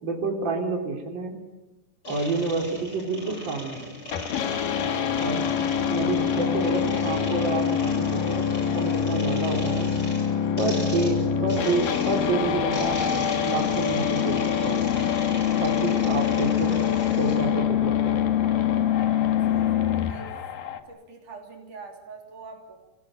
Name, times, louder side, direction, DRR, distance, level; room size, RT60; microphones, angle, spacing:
voice 1, 0.0-1.4 2.1-3.9 5.1-5.5 5.9-8.5 8.7-9.9 10.6-13.0 13.4-14.9 15.6-16.8 17.2-18.2, right 3 dB, 30° right, 1 dB, 4.0 m, -29 dB
sound 1, 2.0-17.4, left 1 dB, 25° left, 8.1 m, -38 dB
sound 2, 4.1-20.1, left 8 dB, 75° left, 3.1 m, -25 dB
sound 3, 11.8-20.8, left 7 dB, 55° left, 2.1 m, -40 dB
voice 2, 19.5-20.4 20.9-22.8, right 4 dB, 60° right, 1 dB, 4.7 m, -44 dB
29.0 x 18.0 x 9.1 m, 1.1 s
omnidirectional pair, 4.1 m